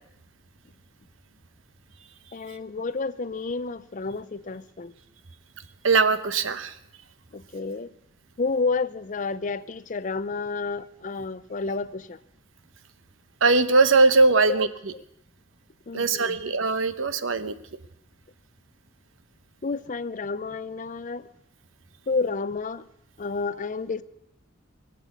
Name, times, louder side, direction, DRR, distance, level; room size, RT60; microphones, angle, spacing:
voice 1, 2.3-4.9 7.3-7.9 8.4-12.2 14.3-14.6 14.9-15.0 15.9-16.4 19.6-21.3 22.1-22.9 23.2-24.0, left 4 dB, 40° left, 15 dB, 0.6 m, -30 dB
voice 2, 5.8-6.8 13.4-14.7 15.9-17.5, right 3 dB, 80° right, 12 dB, 0.9 m, -20 dB
21.5 x 7.6 x 8.2 m, 0.80 s
head